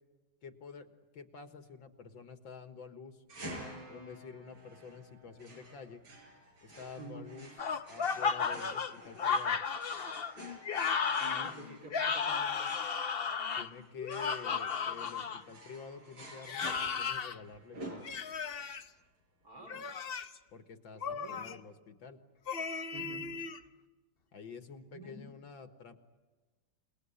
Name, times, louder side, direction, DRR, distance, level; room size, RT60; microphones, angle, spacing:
voice 1, 0.4-3.2 3.9-6.0 6.6-7.5 7.9-9.6 13.6-18.1 20.5-22.2 24.3-26.0, left 5 dB, 65° left, 8 dB, 2.3 m, -49 dB
sound 1, 3.3-18.6, right 1 dB, 70° right, 6.6 m, -50 dB
voice 2, 7.0-7.3 11.2-12.8 19.4-19.9 21.1-21.4 22.9-23.3 24.9-25.2, right 2 dB, 45° right, 2 dB, 4.5 m, -49 dB
sound 2, 7.6-15.4 16.4-17.4 18.0-18.8 19.6-20.4 21.0-21.6 22.5-23.6, left 6 dB, 50° left, 0.7 m, -34 dB
28.5 x 20.0 x 9.9 m, 1.3 s
omnidirectional pair, 2.3 m